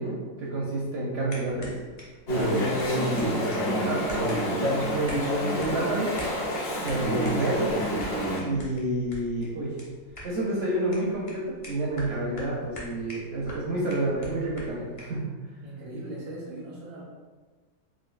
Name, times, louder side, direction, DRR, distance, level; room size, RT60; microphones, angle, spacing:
voice 1, 0.0-1.7 2.3-4.2 4.5-5.4 5.7-6.1 6.8-7.7 8.4-9.8 10.2-15.3, right 2 dB, 60° right, -5 dB, 0.7 m, -29 dB
sound 1, 1.3-15.2, equal, 40° left, 0.5 m, -45 dB
Chatter / Stream, 2.3-8.4, equal, 65° left, 1.5 m, -27 dB
voice 2, 15.6-17.0, right 1 dB, 85° right, -8 dB, 1.3 m, -39 dB
4.5 x 2.5 x 2.3 m, 1.4 s
omnidirectional pair, 1.6 m